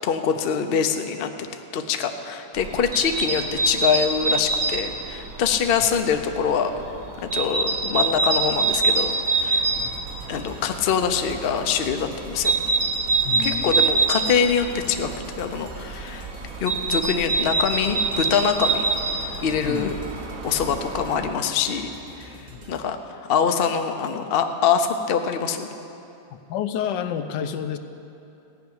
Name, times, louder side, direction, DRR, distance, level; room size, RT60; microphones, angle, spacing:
voice 1, 0.0-1.3 1.7-6.7 7.2-9.6 10.3-12.5 13.4-15.1 15.4-16.3 16.6-18.9 19.4-19.9 20.4-21.9 22.2-22.3 22.7-25.7, left 7 dB, 60° left, 6 dB, 0.6 m, -24 dB
sound 1, 2.6-21.3, right 3 dB, 60° right, 1.4 m, -26 dB
sound 2, 8.5-22.8, right 1 dB, 35° right, 1.2 m, -44 dB
voice 2, 13.2-13.9 19.6-19.9 22.5-22.6 26.5-27.8, left 9 dB, 85° left, 9 dB, 1.3 m, -29 dB
15.0 x 5.8 x 9.4 m, 2.8 s
omnidirectional pair, 1.9 m